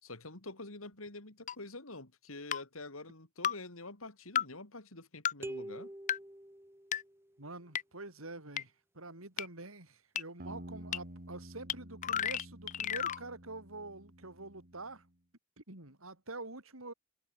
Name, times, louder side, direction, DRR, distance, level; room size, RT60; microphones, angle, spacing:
voice 1, 0.0-5.9, left 2 dB, 85° left, 4.1 m, -47 dB
sound 1, 1.5-1.6 2.5-2.6 3.4-3.5 4.4-4.5 5.2-5.3 6.1-6.2 6.9-7.0 7.7-7.8 8.6-8.7 9.4-9.5 10.2-10.3 10.9-11.0 11.7-11.8 12.0-13.2, left 9 dB, 40° left, 0.5 m, -32 dB
sound 2, 5.4-7.3, right 1 dB, 10° right, 5.8 m, -45 dB
voice 2, 7.4-15.1 15.6-16.9, right 2 dB, 85° right, 5.6 m, -46 dB
sound 3, 10.4-15.1, right 1 dB, 45° right, 4.4 m, -50 dB
head